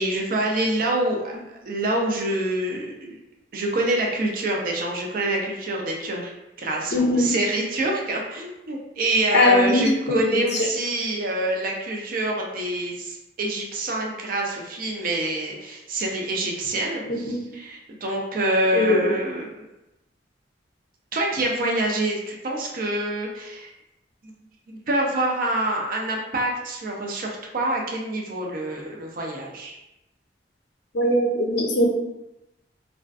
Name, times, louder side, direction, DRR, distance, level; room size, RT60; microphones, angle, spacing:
voice 1, 0.0-3.2 3.5-6.3 6.6-19.6 21.1-23.7 24.9-29.8, right 1 dB, 50° right, 0 dB, 0.4 m, -26 dB
voice 2, 6.9-7.3 9.3-10.4 17.1-17.4 18.7-19.1 30.9-31.9, left 1 dB, 60° left, 0 dB, 0.5 m, -20 dB
2.4 x 2.3 x 2.3 m, 0.93 s
head